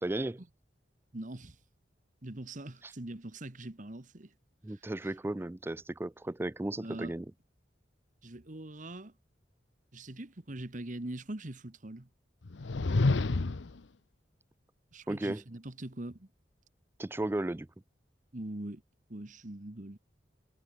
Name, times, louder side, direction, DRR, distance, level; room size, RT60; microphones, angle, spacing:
voice 1, 0.0-0.4 2.8-2.9 4.6-7.3 15.1-15.4 17.0-17.7, right 1 dB, 15° right, 0.4 m, -34 dB
voice 2, 1.1-1.6 2.2-4.3 4.7-4.8 6.8-7.1 8.2-9.1 9.9-12.1 14.9-16.3 18.3-18.8 19.1-20.0, right 1 dB, 45° right, 1.5 m, -42 dB
sound 1, 12.4-13.8, left 3 dB, 90° left, 0.8 m, -28 dB
head